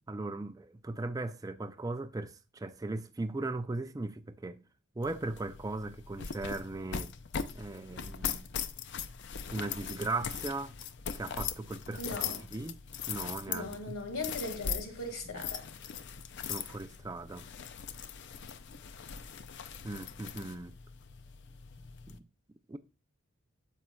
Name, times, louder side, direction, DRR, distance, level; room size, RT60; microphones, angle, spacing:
voice 1, 0.1-4.6 5.0-7.1 7.5-8.5 9.5-10.7 11.1-12.8 13.1-14.0 15.3-15.4 16.4-17.5 19.8-20.7 22.1-22.2 22.7-22.8, right 2 dB, 15° right, 0.4 m, -38 dB
sound 1, 5.0-22.2, left 7 dB, 55° left, 0.5 m, -40 dB
voice 2, 12.0-12.4 13.5-15.6, left 2 dB, 75° left, 1.9 m, -39 dB
9.4 x 7.4 x 2.2 m
head